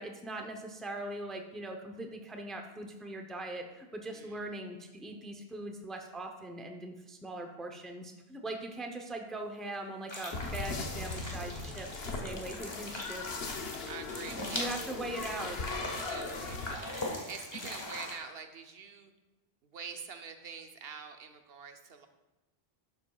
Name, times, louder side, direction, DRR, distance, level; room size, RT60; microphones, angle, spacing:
voice 1, 0.0-13.3 14.5-15.7, right 1 dB, ahead, 3 dB, 0.6 m, -41 dB
voice 2, 4.1-4.6 13.9-14.7 15.9-19.1 19.6-22.1, right 6 dB, 75° right, 6 dB, 1.0 m, -46 dB
sound 1, 10.1-18.1, left 1 dB, 25° left, 1.4 m, -41 dB
sound 2, 10.3-16.8, left 3 dB, 75° left, 1.1 m, -39 dB
11.5 x 7.6 x 2.3 m, 1.0 s
omnidirectional pair, 1.0 m